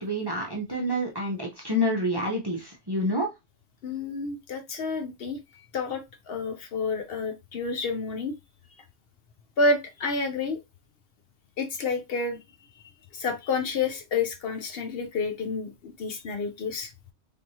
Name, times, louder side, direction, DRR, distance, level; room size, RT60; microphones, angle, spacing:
voice 1, 0.0-3.3, equal, 25° right, 0.6 m, -28 dB
voice 2, 3.8-8.3 9.6-10.6 11.6-12.4 13.1-17.1, left 3 dB, 60° left, 0.8 m, -29 dB
3.5 x 3.1 x 2.7 m
omnidirectional pair, 1.2 m